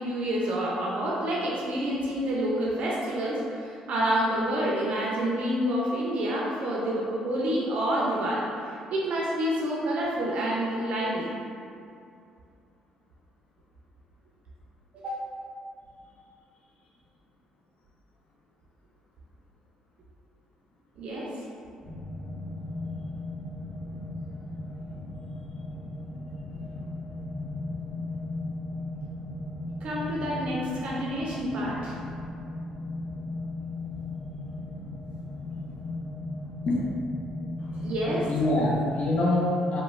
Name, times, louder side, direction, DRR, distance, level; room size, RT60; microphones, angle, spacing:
voice 1, 0.0-11.3 14.9-15.2 21.0-21.3 29.8-31.9 37.7-38.3, right 1 dB, 60° right, -4 dB, 0.4 m, -28 dB
sound 1, 21.8-39.3, left 2 dB, 5° left, 1.1 m, -36 dB
voice 2, 38.3-39.8, left 1 dB, 60° left, -3 dB, 0.4 m, -25 dB
3.0 x 2.0 x 2.3 m, 2.4 s
supercardioid pair, 65°, 2 cm